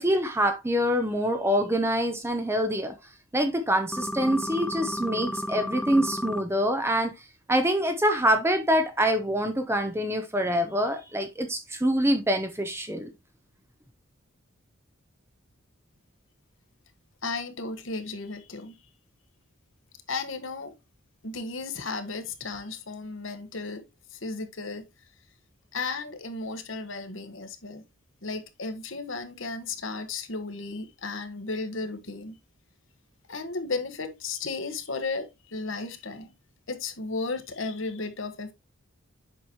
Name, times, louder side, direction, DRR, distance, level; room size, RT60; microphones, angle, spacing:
voice 1, 0.0-2.9 3.3-13.1, equal, 10° right, 0.7 m, -25 dB
sound 1, 3.9-6.4, left 1 dB, 5° left, 0.4 m, -32 dB
voice 2, 17.2-18.8 20.1-20.7 21.2-23.8 24.1-24.9 25.7-27.8 28.2-32.4 33.3-36.3 36.7-38.5, left 3 dB, 65° left, 1.4 m, -34 dB
8.0 x 6.1 x 2.9 m
head